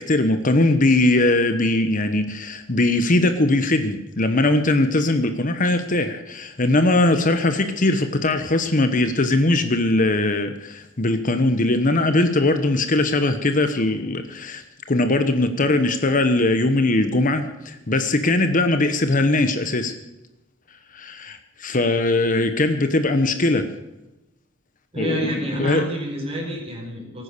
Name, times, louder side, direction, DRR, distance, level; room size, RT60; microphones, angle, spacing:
voice 1, 0.0-19.9 20.9-23.7 24.9-25.8, left 2 dB, 40° left, 8 dB, 1.1 m, -20 dB
voice 2, 24.9-27.2, equal, 30° right, 1 dB, 4.5 m, -28 dB
18.5 x 10.0 x 6.8 m, 0.95 s
head